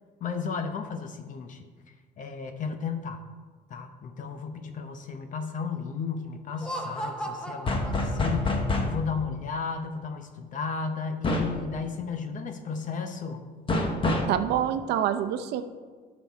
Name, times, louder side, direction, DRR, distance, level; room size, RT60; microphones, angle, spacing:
voice 1, 0.2-3.2 3.7-13.5, left 5 dB, 50° left, 7 dB, 0.8 m, -34 dB
Laughter, 6.5-8.8, right 1 dB, 5° left, 0.9 m, -37 dB
sound 1, 7.7-9.0 11.2-11.6 13.7-14.4, left 2 dB, 30° left, 1.2 m, -26 dB
voice 2, 14.3-15.6, right 10 dB, 80° right, 10 dB, 0.7 m, -26 dB
11.5 x 6.1 x 3.5 m, 1.5 s
cardioid pair, 110°, 17 cm